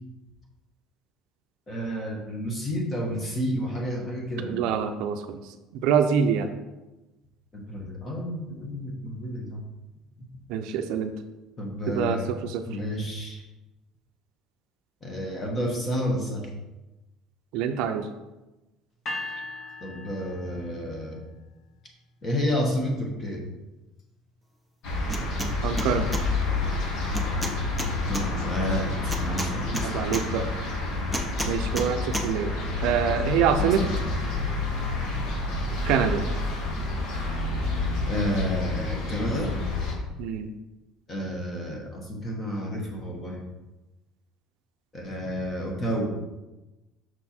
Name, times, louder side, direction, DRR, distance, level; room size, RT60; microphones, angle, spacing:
voice 1, 1.7-4.6 7.5-9.6 11.6-12.3 12.7-13.4 15.0-16.5 19.8-21.2 22.2-23.4 28.1-30.3 33.6-33.9 38.1-39.5 41.1-43.4 44.9-46.1, equal, 20° left, 0 dB, 1.1 m, -30 dB
voice 2, 4.4-5.4 5.7-6.5 10.5-11.2 11.9-12.6 17.5-18.1 25.6-26.1 29.8-30.5 31.5-32.5 32.8-33.9 35.9-36.3 40.2-40.5, right 7 dB, 60° right, 7 dB, 0.5 m, -25 dB
sound 1, 19.1-21.2, left 2 dB, 35° left, 0.8 m, -38 dB
sound 2, 24.8-39.9, left 3 dB, 55° left, 1.4 m, -29 dB
sound 3, 25.1-25.5 25.8-26.2 27.1-28.2 29.1-30.2 31.1-31.9 32.1-32.3, right 1 dB, ahead, 0.5 m, -31 dB
6.2 x 4.3 x 4.2 m, 1.0 s
cardioid pair, 175°, 0 cm